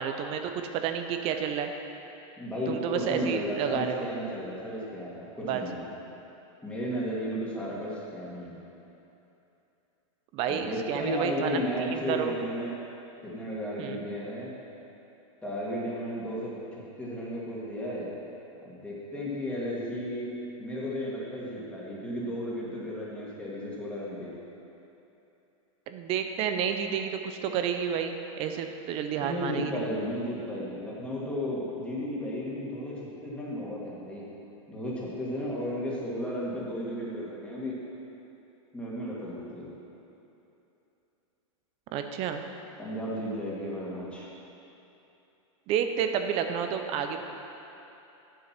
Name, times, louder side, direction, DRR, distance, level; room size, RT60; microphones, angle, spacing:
voice 1, 0.0-1.7 2.7-4.0 5.4-5.6 10.3-11.6 11.9-12.3 13.8-14.0 25.9-29.9 41.9-42.4 45.7-47.2, right 8 dB, 35° right, 6 dB, 0.6 m, -30 dB
voice 2, 2.4-5.9 6.6-8.6 10.5-12.8 13.2-14.5 15.4-18.1 18.6-24.3 29.2-34.3 34.7-37.8 38.7-39.7 42.8-44.3, equal, 5° left, -6 dB, 2.1 m, -34 dB
8.4 x 7.5 x 6.0 m, 3.0 s
supercardioid pair, 140°, 17 cm